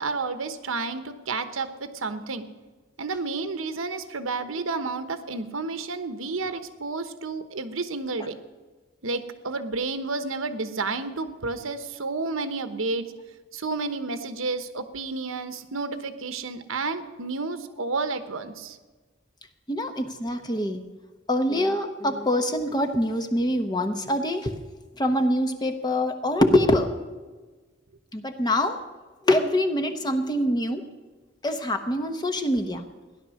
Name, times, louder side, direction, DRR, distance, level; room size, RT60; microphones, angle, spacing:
voice 1, 0.0-2.5 3.0-8.3 9.0-13.1 13.5-18.8, right 3 dB, 75° right, 10 dB, 1.1 m, -31 dB
voice 2, 19.7-20.8 21.3-24.6 25.0-26.9 28.1-28.8 29.3-30.8 31.4-32.8, left 1 dB, 20° left, 7 dB, 1.0 m, -24 dB
16.0 x 11.0 x 6.5 m, 1.3 s
head